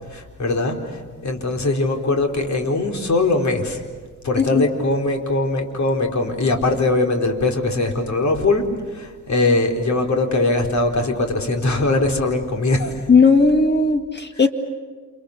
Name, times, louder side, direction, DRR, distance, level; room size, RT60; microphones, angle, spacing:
voice 1, 0.1-0.8 1.2-3.8 4.2-8.6 8.9-12.9, left 2 dB, 60° left, 3 dB, 4.3 m, -21 dB
voice 2, 13.1-14.5, left 4 dB, 35° left, 8 dB, 1.9 m, -16 dB
29.5 x 28.5 x 6.8 m, 1.5 s
cardioid pair, 100°, 32 cm